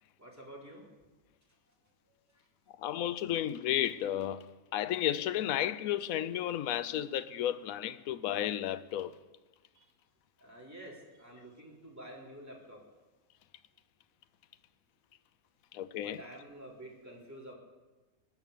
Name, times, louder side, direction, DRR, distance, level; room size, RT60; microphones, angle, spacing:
voice 1, 0.2-0.8 9.7-9.8 10.4-12.8 16.0-17.6, right 1 dB, 10° right, 3.9 m, -49 dB
voice 2, 2.8-9.1 15.7-16.2, left 11 dB, 75° left, 1.1 m, -33 dB
21.0 x 8.9 x 6.8 m
omnidirectional pair, 1.5 m